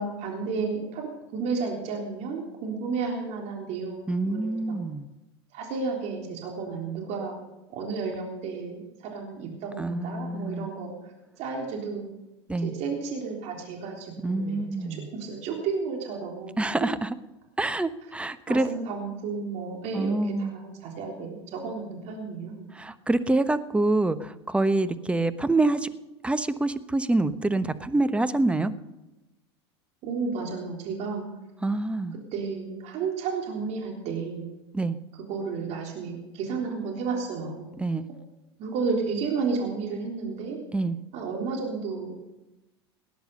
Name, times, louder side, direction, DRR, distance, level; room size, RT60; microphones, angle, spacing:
voice 1, 0.0-4.8 5.5-7.4 7.7-11.1 11.4-12.0 12.6-14.7 15.1-16.6 18.5-22.7 30.0-31.2 32.3-34.5 35.3-37.7 38.6-40.6 41.1-42.1, right 4 dB, 55° right, 0 dB, 3.5 m, -32 dB
voice 2, 4.1-5.1 9.8-10.7 12.5-12.7 14.2-15.1 16.6-17.1 17.6-18.7 19.9-20.5 22.7-25.9 26.2-28.7 31.6-32.2 34.7-35.0 37.8-38.0 40.7-41.0, right 2 dB, 10° right, 12 dB, 1.0 m, -26 dB
18.0 x 10.5 x 6.6 m, 1.0 s
hypercardioid pair, 90°, 14 cm